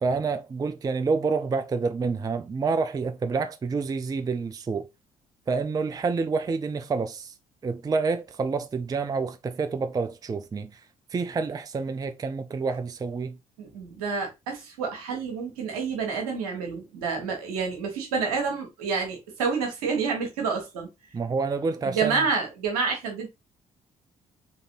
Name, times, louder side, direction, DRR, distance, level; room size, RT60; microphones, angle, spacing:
voice 1, 0.0-4.9 5.5-7.3 7.6-10.8 11.1-13.4 21.1-22.3, right 4 dB, 20° right, 0.4 m, -28 dB
voice 2, 13.6-20.9 21.8-23.3, right 5 dB, 75° right, 1.2 m, -28 dB
4.0 x 3.2 x 2.6 m
figure-of-eight pair, 45°, 19 cm